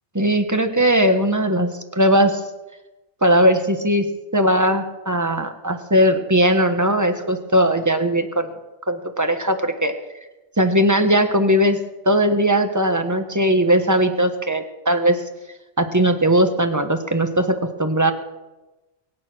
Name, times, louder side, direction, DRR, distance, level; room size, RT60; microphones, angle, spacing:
voice 1, 0.1-2.4 3.2-4.1 4.3-8.5 8.9-9.9 10.6-11.8 12.0-15.2 15.8-18.1, right 1 dB, 15° right, 7 dB, 1.3 m, -19 dB
22.5 x 8.9 x 6.2 m, 1.1 s
omnidirectional pair, 1.1 m